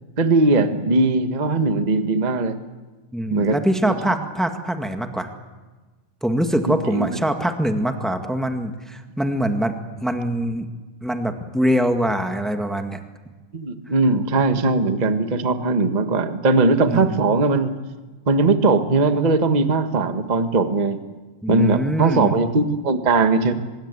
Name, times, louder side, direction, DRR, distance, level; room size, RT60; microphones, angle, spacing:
voice 1, 0.2-2.6 3.3-3.6 3.9-4.1 6.7-7.1 13.5-17.7 18.3-21.0 21.5-23.5, right 3 dB, 75° right, 8 dB, 0.4 m, -19 dB
voice 2, 3.1-5.3 6.2-10.7 11.0-13.0 16.9-17.1 21.4-22.3, equal, ahead, 5 dB, 0.7 m, -23 dB
25.0 x 22.0 x 8.3 m, 1.3 s
omnidirectional pair, 3.7 m